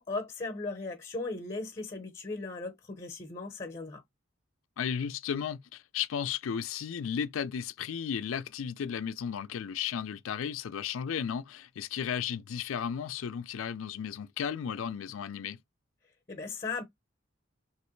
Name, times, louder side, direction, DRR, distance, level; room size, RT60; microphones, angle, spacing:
voice 1, 0.0-4.0 16.3-16.8, left 3 dB, 30° left, 0.7 m, -37 dB
voice 2, 4.8-15.6, left 7 dB, 85° left, 0.4 m, -34 dB
3.2 x 2.9 x 3.0 m
head